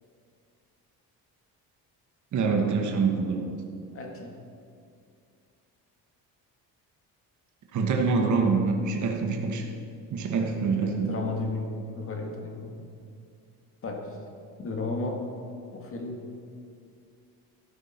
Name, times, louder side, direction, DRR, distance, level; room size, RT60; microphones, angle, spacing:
voice 1, 2.3-3.5 7.7-9.7 10.1-11.1, right 4 dB, 50° right, 3 dB, 1.3 m, -25 dB
voice 2, 3.9-4.3 10.4-12.9 13.8-14.2 14.6-15.3 15.7-16.3, left 3 dB, 35° left, 2 dB, 1.9 m, -34 dB
13.5 x 13.0 x 4.4 m, 2.3 s
cardioid pair, 150°, 37 cm